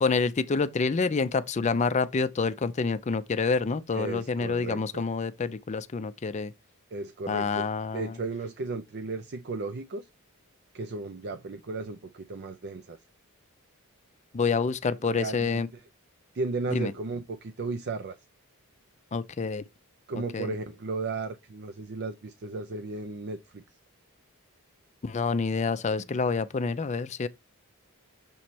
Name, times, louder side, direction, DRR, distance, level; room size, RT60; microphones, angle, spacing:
voice 1, 0.0-6.5 7.3-8.1 14.3-15.7 16.7-16.9 19.1-19.6 20.3-20.5 25.0-27.3, left 4 dB, 30° left, 0.4 m, -27 dB
voice 2, 3.9-5.0 6.9-7.6 7.9-10.1 10.7-13.0 15.0-15.8 16.3-18.2 20.1-23.6, right 3 dB, 50° right, 0.5 m, -35 dB
6.9 x 3.1 x 4.3 m
head